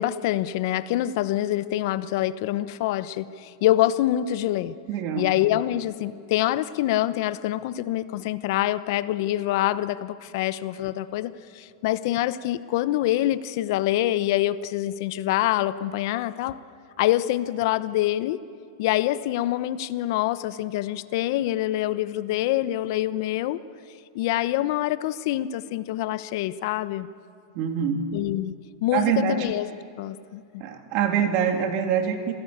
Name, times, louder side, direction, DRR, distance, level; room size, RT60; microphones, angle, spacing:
voice 1, 0.0-4.7 5.2-16.6 17.0-18.4 18.8-23.6 24.1-27.1 28.1-28.6 28.8-29.7 30.0-30.6, left 14 dB, 55° left, 15 dB, 0.9 m, -25 dB
voice 2, 4.9-5.3 27.5-28.0 28.9-29.4 30.6-32.3, right 7 dB, 45° right, 5 dB, 3.1 m, -24 dB
27.0 x 18.0 x 8.8 m, 2.4 s
supercardioid pair, 140°, 2 cm